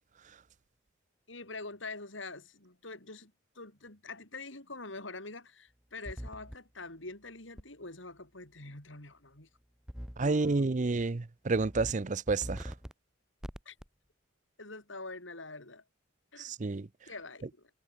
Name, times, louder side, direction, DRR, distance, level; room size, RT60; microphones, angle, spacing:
voice 1, 1.3-9.5 10.2-10.7 13.7-13.8 14.6-15.8 16.3-16.5 17.1-17.7, left 3 dB, 70° left, 5.6 m, -45 dB
sound 1, 6.1-6.6 7.6-7.7 9.9-10.3 10.8-11.1 11.5-11.9 12.3-12.9 13.4-13.9, equal, 5° right, 0.9 m, -42 dB
voice 2, 10.2-12.7 16.4-16.9, right 3 dB, 40° right, 0.6 m, -30 dB
head